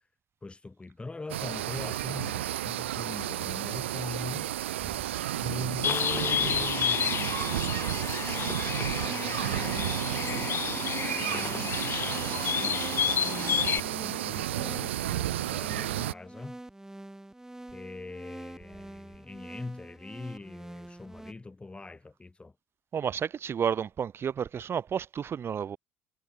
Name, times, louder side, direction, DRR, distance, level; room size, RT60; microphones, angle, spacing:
voice 1, 0.4-4.5 5.3-16.6 17.7-22.6, left 3 dB, 15° left, 4.4 m, -43 dB
sound 1, 1.3-16.1, right 13 dB, 90° right, 0.3 m, -32 dB
Bird, 5.8-13.8, left 8 dB, 40° left, 0.5 m, -30 dB
sound 2, 8.2-21.3, right 1 dB, 10° right, 3.0 m, -45 dB
voice 2, 22.9-25.8, right 8 dB, 40° right, 1.0 m, -31 dB
hypercardioid pair, 70°, 6 cm